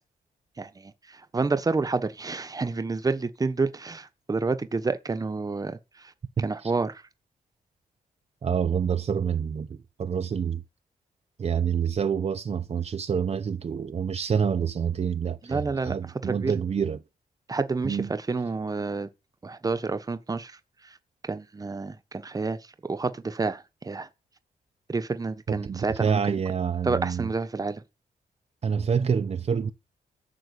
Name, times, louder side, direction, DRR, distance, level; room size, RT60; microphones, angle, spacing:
voice 1, 0.6-6.1 6.4-7.0 15.4-16.0 16.2-16.5 17.5-19.1 19.4-20.6 21.2-22.6 22.9-24.1 24.9-26.4 26.8-27.8, right 3 dB, 25° right, 1.1 m, -29 dB
voice 2, 6.4-6.7 8.4-10.6 11.4-17.0 17.8-18.1 25.5-27.3 28.6-29.7, right 7 dB, 45° right, 0.8 m, -27 dB
13.5 x 6.0 x 8.4 m
wide cardioid pair, 120°, 16 cm